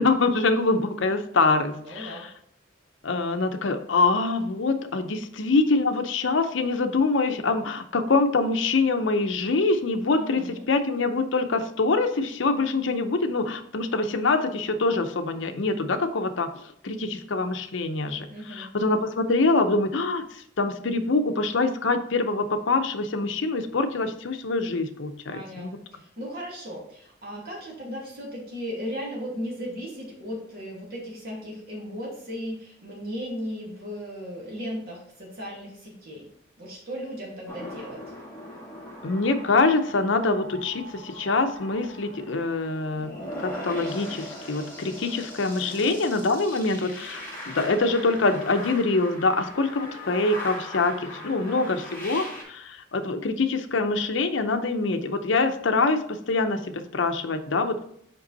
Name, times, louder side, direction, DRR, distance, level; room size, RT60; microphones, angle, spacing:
voice 1, 0.0-2.3 3.0-25.8 39.0-43.1 43.4-57.8, left 3 dB, 70° left, 7 dB, 0.6 m, -25 dB
voice 2, 1.7-2.3 10.2-10.7 18.3-18.7 25.3-36.3 36.6-38.0 45.6-45.9 51.1-51.7, equal, 50° right, -4 dB, 2.4 m, -36 dB
sound 1, 37.5-52.4, left 1 dB, 10° left, 1.8 m, -39 dB
5.4 x 5.3 x 4.0 m, 0.68 s
head